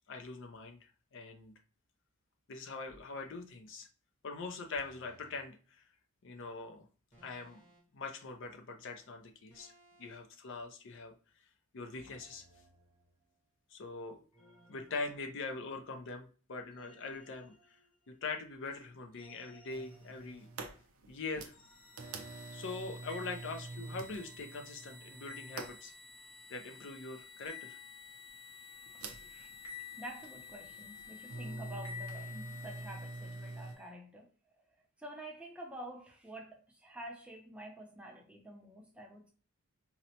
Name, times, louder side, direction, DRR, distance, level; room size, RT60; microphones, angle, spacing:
voice 1, 0.1-1.5 2.5-3.9 4.2-5.8 6.2-6.9 7.2-7.6 7.9-9.7 10.0-11.1 11.7-12.4 13.7-14.2 14.7-17.8 18.1-20.5 21.1-21.5 22.5-25.9 26.5-27.8, left 3 dB, 55° left, 0.5 m, -43 dB
sound 1, 2.9-3.1 4.7-5.4 7.1-8.0 9.5-10.2 11.9-13.4 14.3-15.9 16.7-18.4 19.1-20.6 21.5-22.3, right 1 dB, 30° left, 1.2 m, -63 dB
sound 2, 19.7-33.8, right 3 dB, 70° right, 0.5 m, -47 dB
sound 3, 21.7-33.8, left 5 dB, 85° left, 1.2 m, -51 dB
voice 2, 29.0-29.5 30.0-34.6 35.0-39.3, right 1 dB, 5° right, 0.5 m, -49 dB
4.0 x 2.1 x 2.8 m
head